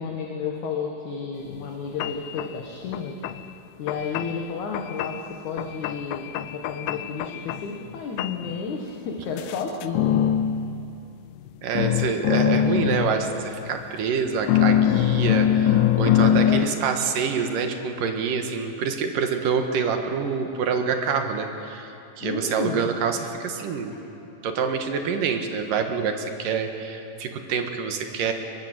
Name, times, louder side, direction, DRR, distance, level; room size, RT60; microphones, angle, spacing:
voice 1, 0.0-3.2 3.8-10.2 16.2-16.7 22.2-22.9 23.9-24.0, left 5 dB, 60° left, 1 dB, 2.8 m, -32 dB
sound 1, 1.5-1.6 2.0-2.5 2.9-3.4 3.9-4.4 4.7-5.3 5.6-7.9 8.2-8.5 9.4-11.5 11.7-13.9 14.5-16.7, left 10 dB, 80° left, 2.1 m, -23 dB
voice 2, 11.6-23.9 24.4-28.3, right 6 dB, 65° right, 5 dB, 3.0 m, -26 dB
23.5 x 21.5 x 8.0 m, 2.8 s
omnidirectional pair, 4.4 m